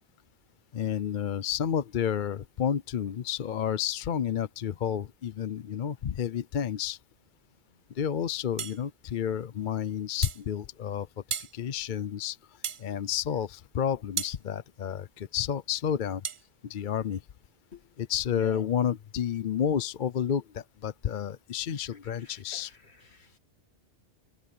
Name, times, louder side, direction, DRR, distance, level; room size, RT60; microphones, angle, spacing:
voice 1, 0.7-7.0 8.0-11.1 11.5-12.4 12.8-16.2 16.6-17.2 18.0-22.7, left 9 dB, 55° left, 0.7 m, -30 dB
sound 1, 8.6-8.8 10.2-10.4 11.3-11.5 12.6-12.9 14.2-14.4 16.2-16.4, right 7 dB, 40° right, 0.5 m, -34 dB
voice 2, 18.3-18.7 22.2-22.8 23.1-23.4, left 3 dB, 75° left, 2.7 m, -46 dB
omnidirectional pair, 1.1 m